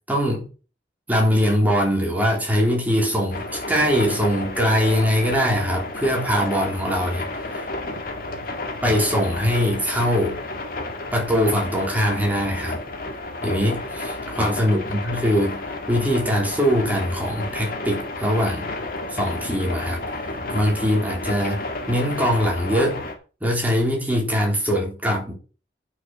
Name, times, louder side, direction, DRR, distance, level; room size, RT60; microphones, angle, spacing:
voice 1, 0.1-0.5 1.1-7.7 8.8-10.4 11.1-12.8 13.4-18.8 19.1-23.0 23.4-25.3, equal, 10° right, -1 dB, 3.7 m, -22 dB
sound 1, 3.3-23.2, left 2 dB, 50° left, 2.1 m, -32 dB
9.6 x 6.4 x 6.0 m, 0.35 s
head